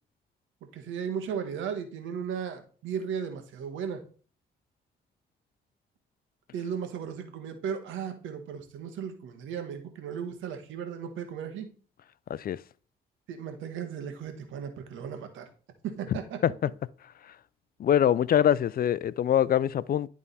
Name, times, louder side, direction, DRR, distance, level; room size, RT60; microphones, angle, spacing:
voice 1, 0.7-4.0 6.5-11.7 13.3-15.5 15.8-16.4, right 7 dB, 80° right, 1.4 m, -36 dB
voice 2, 12.3-12.6 16.4-16.7 17.8-20.1, left 10 dB, 50° left, 0.4 m, -24 dB
11.0 x 3.6 x 4.1 m
supercardioid pair, 60°, 20 cm